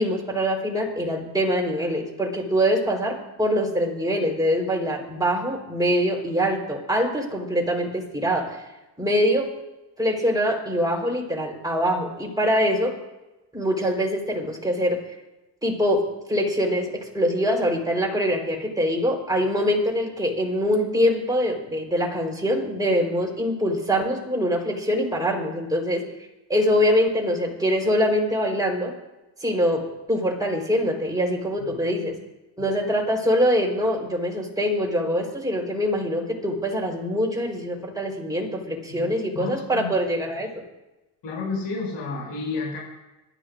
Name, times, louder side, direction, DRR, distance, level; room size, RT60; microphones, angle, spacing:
voice 1, 0.0-8.6 9.0-9.5 10.0-12.9 13.5-15.0 15.6-26.1 26.5-28.9 29.4-32.2 32.6-40.6, equal, 10° right, 0 dB, 4.3 m, -24 dB
voice 2, 39.3-39.9 41.2-42.8, left 4 dB, 75° left, -3 dB, 6.3 m, -31 dB
26.0 x 13.5 x 2.6 m, 1.0 s
cardioid pair, 120°, 44 cm